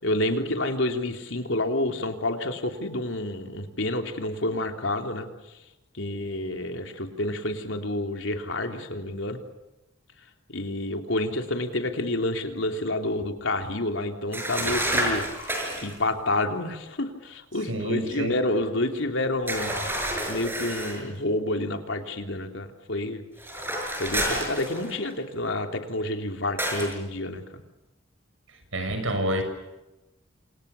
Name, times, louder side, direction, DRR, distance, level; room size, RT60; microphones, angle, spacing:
voice 1, 0.0-5.3 5.9-9.4 10.5-20.0 20.3-23.2 24.0-27.4, left 1 dB, 70° left, 5 dB, 3.5 m, -29 dB
sound 1, 14.3-15.9 19.5-21.0 23.4-25.1 26.6-26.9, right 1 dB, 10° right, 6.3 m, -29 dB
voice 2, 17.7-18.4 28.7-29.4, right 1 dB, 80° right, 6 dB, 6.8 m, -27 dB
28.5 x 27.5 x 7.1 m, 1.0 s
head